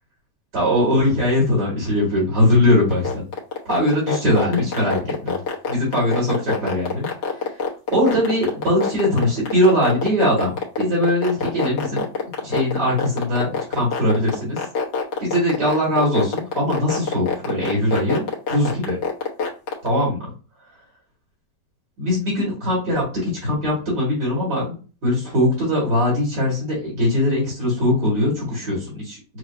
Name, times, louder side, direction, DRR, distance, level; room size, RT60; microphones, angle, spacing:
voice 1, 0.5-3.2 3.7-5.4 5.7-7.1 7.9-12.0 12.4-14.6 15.2-18.2 18.5-19.0 19.8-20.3 22.0-24.8 25.0-29.4, left 1 dB, 70° right, -5 dB, 2.6 m, -21 dB
sound 1, 2.9-19.9, left 5 dB, 80° left, 1.7 m, -24 dB
6.3 x 2.1 x 2.5 m, 0.35 s
omnidirectional pair, 1.8 m